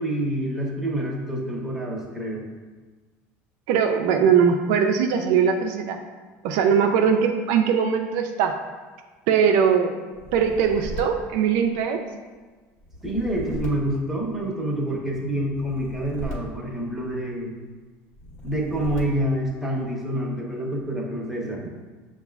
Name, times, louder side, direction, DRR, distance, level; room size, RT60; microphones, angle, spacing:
voice 1, 0.0-2.5 13.0-17.5 18.4-21.6, right 1 dB, 5° right, -4 dB, 0.8 m, -27 dB
voice 2, 3.7-6.0 6.4-8.6 9.3-10.0 10.3-12.0, right 7 dB, 75° right, 4 dB, 0.4 m, -20 dB
sound 1, 10.1-12.1 12.8-14.7 15.5-17.4 18.1-19.5, equal, 45° left, 1.3 m, -38 dB
6.8 x 2.3 x 2.3 m, 1.4 s
supercardioid pair, 115°, 7 cm